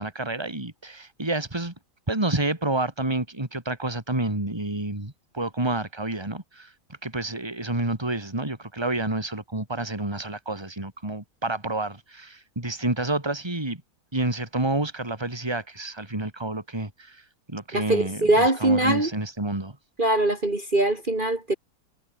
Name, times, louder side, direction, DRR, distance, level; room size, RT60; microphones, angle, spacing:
voice 1, 0.0-1.7 2.1-6.7 7.0-13.8 14.1-19.8, right 2 dB, 15° right, 3.3 m, -29 dB
voice 2, 17.7-19.1 20.0-21.6, right 2 dB, 30° right, 3.1 m, -22 dB
omnidirectional pair, 1.7 m